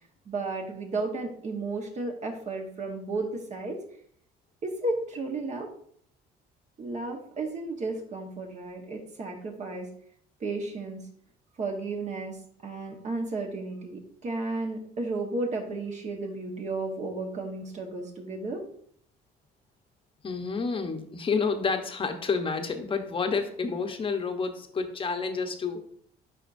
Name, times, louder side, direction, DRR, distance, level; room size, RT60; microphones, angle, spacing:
voice 1, 0.3-3.8 4.6-5.7 6.8-9.9 10.4-11.0 11.6-12.4 12.6-18.6, right 3 dB, 45° right, 2 dB, 1.2 m, -33 dB
voice 2, 20.2-25.9, left 5 dB, 30° left, 6 dB, 0.9 m, -29 dB
10.5 x 4.1 x 2.6 m, 0.63 s
cardioid pair, 110°, 17 cm